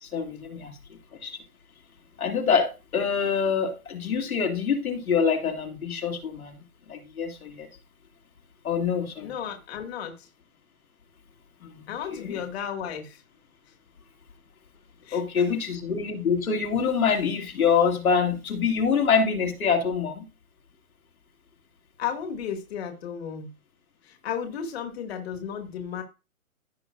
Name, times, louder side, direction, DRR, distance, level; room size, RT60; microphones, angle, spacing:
voice 1, 0.0-0.7 1.1-1.4 2.2-6.6 6.9-7.7 8.6-9.3 11.6-11.8 12.1-12.4 15.1-20.3, left 6 dB, 75° left, 2.5 m, -25 dB
voice 2, 9.2-10.3 11.9-13.2 15.0-15.4 22.0-23.5 24.0-26.0, left 8 dB, 45° left, 2.0 m, -34 dB
16.0 x 5.7 x 2.5 m
hypercardioid pair, 150°, 43 cm